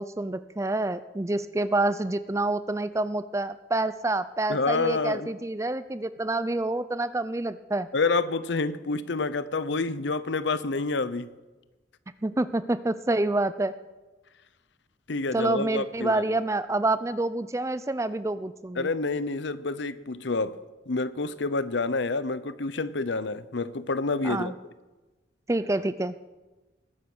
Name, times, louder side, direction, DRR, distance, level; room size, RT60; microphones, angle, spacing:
voice 1, 0.0-7.9 12.2-13.7 15.3-18.9 24.2-24.5 25.5-26.1, right 2 dB, 15° right, 14 dB, 0.4 m, -27 dB
voice 2, 4.5-5.3 7.9-11.3 15.1-16.3 18.8-20.6 20.9-24.5, left 3 dB, 70° left, 15 dB, 0.7 m, -28 dB
20.0 x 10.0 x 6.2 m, 1.2 s
head